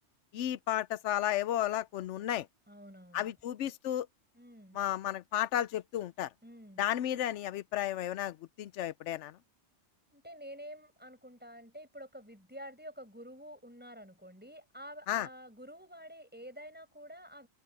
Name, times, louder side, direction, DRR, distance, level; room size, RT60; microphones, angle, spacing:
voice 1, 0.3-2.5 3.1-4.1 4.7-6.3 6.8-9.4 15.1-15.3, left 12 dB, 85° left, 0.9 m, -33 dB
voice 2, 2.7-3.3 4.3-4.8 6.4-6.9 10.1-17.5, equal, 10° right, 7.1 m, -49 dB
open air
omnidirectional pair, 1.2 m